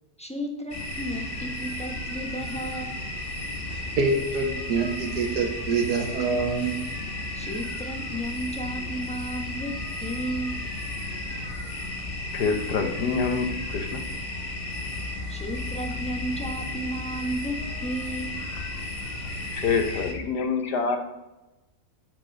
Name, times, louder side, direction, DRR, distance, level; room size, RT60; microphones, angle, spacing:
voice 1, 0.2-3.0 7.3-9.7 10.0-10.6 15.3-17.6 17.8-18.3, right 1 dB, 5° left, 2 dB, 0.8 m, -33 dB
sound 1, 0.7-20.1, left 2 dB, 40° left, 1.3 m, -34 dB
voice 2, 4.0-6.8, right 4 dB, 80° right, 3 dB, 1.8 m, -25 dB
voice 3, 12.3-14.0 19.5-21.0, left 5 dB, 90° left, 6 dB, 1.6 m, -26 dB
7.3 x 5.3 x 5.3 m, 1.0 s
omnidirectional pair, 1.7 m